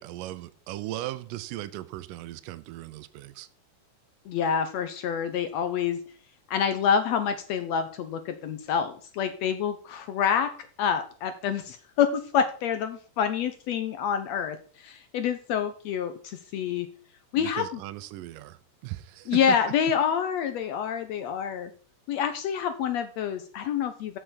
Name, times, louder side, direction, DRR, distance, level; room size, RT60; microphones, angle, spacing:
voice 1, 0.0-3.5 17.4-19.6, right 15 dB, 90° right, 2.2 m, -37 dB
voice 2, 4.2-6.0 6.5-10.5 10.8-16.9 17.3-17.8 19.3-21.7 22.1-24.2, left 7 dB, 75° left, 1.6 m, -27 dB
7.9 x 6.8 x 5.8 m
omnidirectional pair, 3.8 m